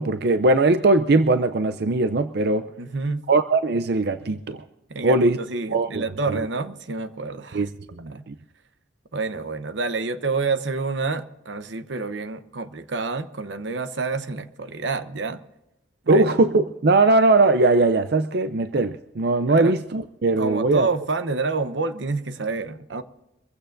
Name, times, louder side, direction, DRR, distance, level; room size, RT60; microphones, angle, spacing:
voice 1, 0.0-2.7 3.3-4.6 5.0-5.4 5.7-6.1 7.5-8.3 16.1-20.9, right 2 dB, 60° right, 0.5 m, -20 dB
voice 2, 2.8-3.2 4.9-7.6 8.1-8.2 9.1-15.4 16.1-16.2 19.5-19.7 20.4-23.0, right 3 dB, 85° right, 0.9 m, -28 dB
24.0 x 15.5 x 2.6 m
head